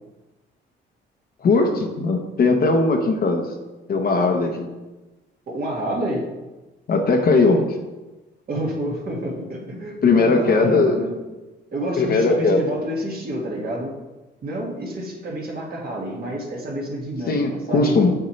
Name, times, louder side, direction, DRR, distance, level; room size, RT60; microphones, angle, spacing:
voice 1, 1.4-3.5 3.9-4.7 6.9-7.7 10.0-11.0 12.0-12.6 17.3-18.1, left 3 dB, 50° left, 3 dB, 1.0 m, -19 dB
voice 2, 5.5-6.2 8.5-11.2 11.7-13.9 14.4-17.9, right 1 dB, 50° right, -2 dB, 2.0 m, -28 dB
7.1 x 6.7 x 3.2 m, 1.1 s
cardioid pair, 90°, 20 cm